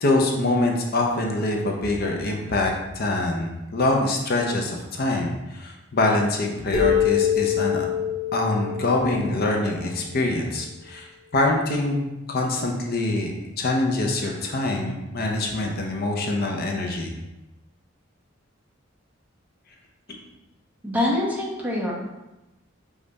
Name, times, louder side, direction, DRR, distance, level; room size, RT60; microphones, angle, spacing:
voice 1, 0.0-7.9 8.3-11.1 11.3-13.3 13.6-17.1, left 2 dB, 50° left, 1 dB, 0.6 m, -24 dB
sound 1, 6.7-10.3, left 9 dB, 85° left, 0.8 m, -25 dB
voice 2, 20.8-21.9, left 1 dB, 10° right, -4 dB, 0.8 m, -24 dB
5.3 x 2.4 x 4.0 m, 0.99 s
head